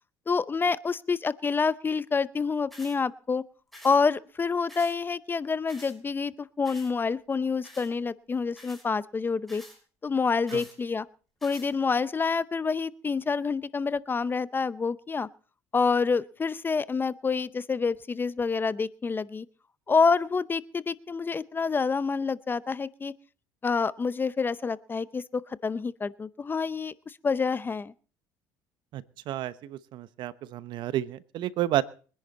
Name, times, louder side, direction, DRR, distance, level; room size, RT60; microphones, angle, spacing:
voice 1, 0.3-3.4 3.8-9.6 10.0-11.1 11.4-15.3 15.7-19.5 19.9-23.1 23.6-27.9, left 5 dB, 25° left, 18 dB, 0.6 m, -27 dB
sound 1, 2.7-3.0 3.7-4.0 4.7-5.0 5.7-5.9 6.7-6.9 7.6-7.9 8.5-8.9 9.5-9.8 10.5-10.8 11.4-11.7, equal, ahead, 6.2 m, -48 dB
voice 2, 28.9-31.8, right 13 dB, 65° right, 16 dB, 1.0 m, -31 dB
23.5 x 10.5 x 4.2 m, 0.39 s
supercardioid pair, 95°, 9 cm